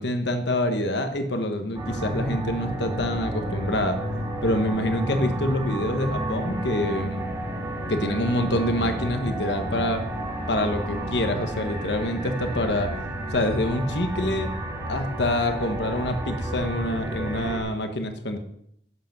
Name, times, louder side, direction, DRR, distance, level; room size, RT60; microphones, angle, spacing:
voice 1, 0.0-4.0 4.4-7.3 7.9-10.0 10.5-12.9 13.3-14.5 14.9-18.4, left 1 dB, 70° left, 7 dB, 1.3 m, -26 dB
sound 1, 1.7-17.6, right 1 dB, 15° right, 2.1 m, -31 dB
11.5 x 7.9 x 6.0 m, 0.72 s
head